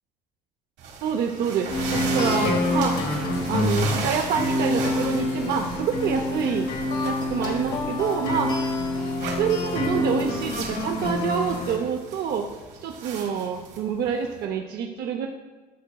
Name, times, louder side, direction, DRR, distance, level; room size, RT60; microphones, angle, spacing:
sound 1, 0.8-14.4, right 4 dB, 85° right, 1.6 m, -37 dB
voice 1, 1.0-3.0 3.5-6.7 7.0-8.5 9.4-12.5 12.8-15.3, right 7 dB, 70° right, 2 dB, 0.6 m, -27 dB
sound 2, 1.7-11.8, left 2 dB, 85° left, 1.6 m, -26 dB
11.0 x 6.2 x 2.3 m, 1.3 s
cardioid pair, 110°, 17 cm